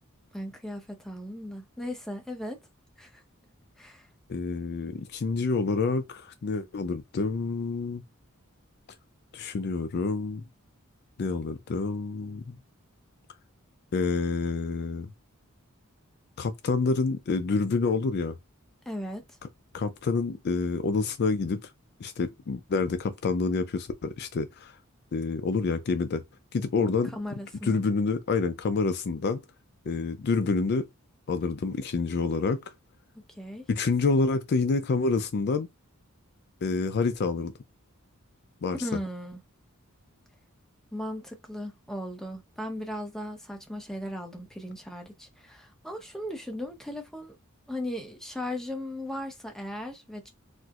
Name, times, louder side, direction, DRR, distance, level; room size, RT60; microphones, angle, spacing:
voice 1, 0.3-2.6 3.0-3.2 3.8-4.1 18.9-19.2 26.8-27.8 33.3-33.6 38.7-39.4 40.9-47.4 47.7-50.3, left 1 dB, ahead, 0.7 m, -37 dB
voice 2, 4.3-8.0 9.3-10.4 11.2-12.6 13.9-15.1 16.4-18.4 19.7-21.6 22.0-24.7 25.1-26.2 26.5-27.1 27.6-29.4 29.9-30.9 31.3-32.7 33.7-35.7 36.6-37.5 38.6-38.8, left 4 dB, 50° left, 0.4 m, -28 dB
4.3 x 2.0 x 2.4 m
head